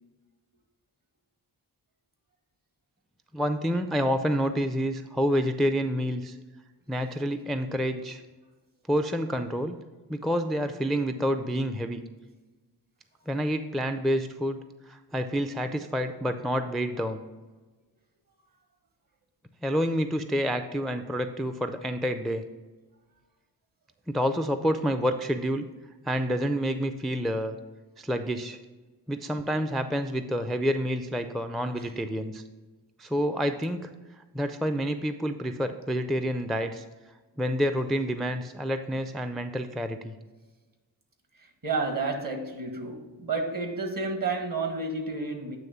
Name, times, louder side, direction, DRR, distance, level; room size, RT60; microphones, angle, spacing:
voice 1, 3.3-6.4 6.9-8.2 8.9-9.7 10.1-12.0 13.3-14.6 14.9-17.2 19.6-22.4 24.1-25.7 26.1-27.6 28.0-28.6 29.1-32.4 33.0-33.9 34.3-36.9 37.4-40.1, equal, ahead, 9 dB, 0.4 m, -28 dB
voice 2, 41.4-45.6, right 3 dB, 50° right, 5 dB, 1.5 m, -31 dB
9.1 x 3.1 x 5.7 m, 1.2 s
cardioid pair, 50°, 42 cm